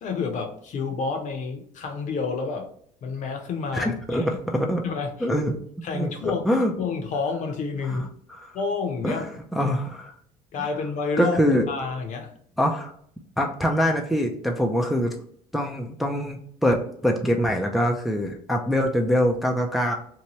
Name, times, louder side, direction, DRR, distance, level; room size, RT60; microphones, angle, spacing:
voice 1, 0.0-2.7 3.0-4.3 4.8-5.3 5.8-6.4 6.8-8.1 8.5-9.3 10.5-11.4 11.7-12.3, left 4 dB, 50° left, 4 dB, 0.7 m, -29 dB
voice 2, 3.7-4.8 5.2-5.6 5.9-6.7 7.8-8.6 9.0-10.1 10.6-10.7 11.2-11.7 12.6-12.9 13.4-15.2 15.5-19.9, equal, ahead, 2 dB, 0.4 m, -24 dB
2.8 x 2.2 x 2.9 m, 0.64 s
supercardioid pair, 90°, 16 cm